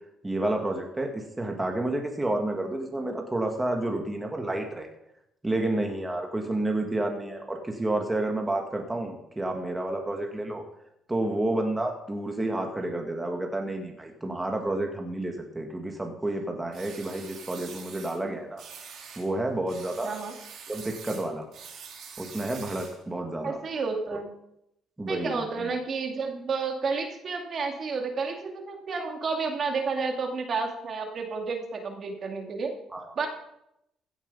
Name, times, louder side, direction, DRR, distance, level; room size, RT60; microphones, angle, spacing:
voice 1, 0.2-4.9 5.4-10.6 11.1-18.6 19.1-20.2 20.7-21.5 22.2-23.6 25.0-25.7 32.9-33.0, right 1 dB, 15° right, 3 dB, 1.8 m, -30 dB
sound 1, 16.7-18.2 18.6-19.3 19.7-23.0, right 6 dB, 70° right, 2.6 m, -45 dB
voice 2, 20.0-20.3 23.4-24.3 25.1-32.7 33.2-33.3, right 4 dB, 50° right, 4 dB, 2.3 m, -31 dB
16.0 x 7.2 x 5.5 m, 0.81 s
cardioid pair, 95°, 0 cm